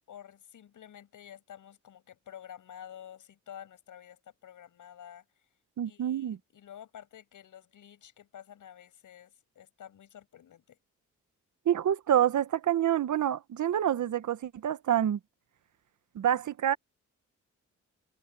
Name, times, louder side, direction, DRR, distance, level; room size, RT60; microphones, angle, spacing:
voice 1, 0.1-5.2 5.8-10.8, left 10 dB, 75° left, 6.2 m, -50 dB
voice 2, 5.8-6.4 11.6-15.2 16.1-16.8, right 10 dB, 70° right, 1.2 m, -27 dB
cardioid pair, 85°, 31 cm